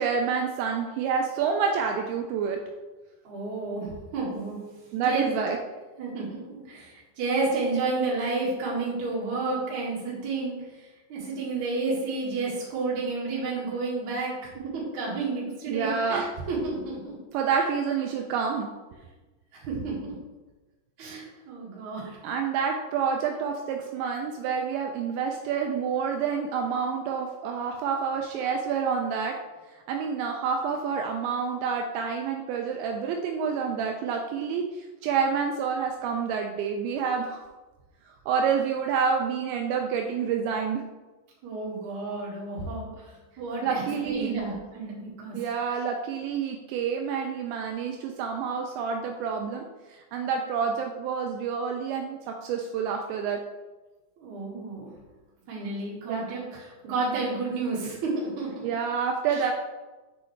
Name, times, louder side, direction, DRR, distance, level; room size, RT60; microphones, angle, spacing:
voice 1, 0.0-2.6 4.9-5.6 15.5-16.2 17.3-18.7 22.2-29.4 29.9-37.4 38.3-40.8 43.6-44.3 45.3-53.4 56.1-56.3 58.6-59.5, right 6 dB, 85° right, 2 dB, 2.5 m, -28 dB
voice 2, 3.2-5.3 6.0-17.2 19.5-20.2 21.0-22.2 41.4-45.4 54.2-54.9 55.5-58.7 59.3-59.5, right 3 dB, 55° right, -5 dB, 2.4 m, -31 dB
6.8 x 6.2 x 3.2 m, 1.2 s
omnidirectional pair, 5.7 m